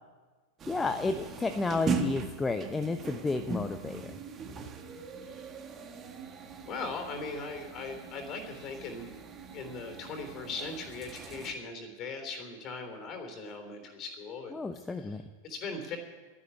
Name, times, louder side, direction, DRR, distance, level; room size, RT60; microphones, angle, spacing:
sound 1, 0.6-11.5, right 4 dB, 25° right, 1.7 m, -39 dB
voice 1, 0.7-4.2 14.5-15.2, left 3 dB, 10° left, 7 dB, 0.8 m, -32 dB
voice 2, 6.6-14.6 14.9-16.0, left 3 dB, 35° left, 6 dB, 3.5 m, -40 dB
12.5 x 11.0 x 9.7 m, 1.3 s
figure-of-eight pair, 90°, 0 cm